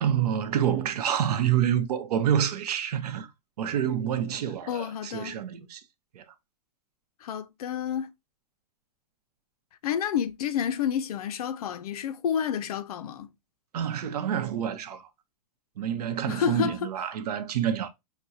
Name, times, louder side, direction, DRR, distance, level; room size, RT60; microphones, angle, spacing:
voice 1, 0.0-3.3 3.6-5.8 6.1-6.2 13.7-15.1 15.8-17.9, right 9 dB, 75° right, 0.7 m, -27 dB
voice 2, 4.7-5.4 7.2-8.1 9.8-13.3 16.3-16.9, left 8 dB, 70° left, 0.6 m, -29 dB
5.9 x 2.2 x 2.6 m
supercardioid pair, 170°, 20 cm